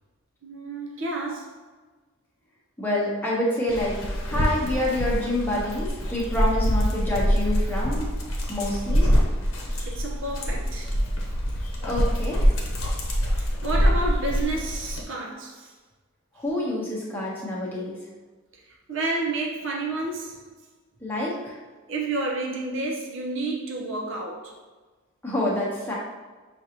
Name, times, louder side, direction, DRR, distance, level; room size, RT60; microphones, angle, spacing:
voice 1, 0.4-1.6 9.9-10.9 13.3-15.7 18.9-20.4 21.9-24.5, right 2 dB, 60° right, -2 dB, 0.8 m, -30 dB
voice 2, 2.8-3.9 4.2-8.1 8.5-9.1 11.8-12.5 16.3-18.0 21.0-21.6 25.2-25.9, left 1 dB, 10° left, -6 dB, 0.9 m, -27 dB
Dog, 3.7-15.0, equal, 70° left, 0.8 m, -25 dB
6.3 x 2.5 x 2.9 m, 1.3 s
head